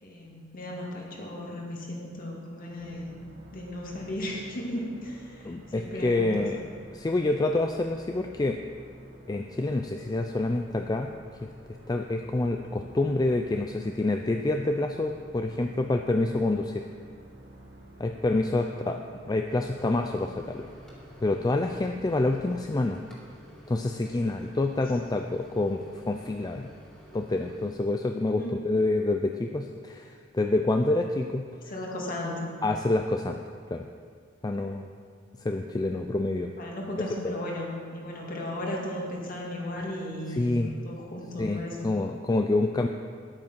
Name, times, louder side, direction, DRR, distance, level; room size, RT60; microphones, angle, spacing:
voice 1, 0.0-3.1 3.5-6.6 18.7-18.9 28.3-28.6 31.7-32.5 36.6-41.8, left 1 dB, 45° left, -2 dB, 2.1 m, -36 dB
sound 1, 2.8-22.5, right 1 dB, 60° right, 1.6 m, -50 dB
voice 2, 5.4-6.6 6.9-8.6 9.3-11.1 11.4-11.5 11.9-16.8 18.0-19.0 19.2-20.7 21.2-23.0 23.7-26.7 27.1-31.5 32.6-33.4 33.7-33.9 34.4-34.9 35.4-36.5 40.3-40.7 41.4-42.9, left 2 dB, 20° left, 4 dB, 0.4 m, -27 dB
Microwave oven, 19.5-27.7, equal, 5° left, 2.3 m, -51 dB
10.5 x 8.8 x 6.0 m, 2.1 s
head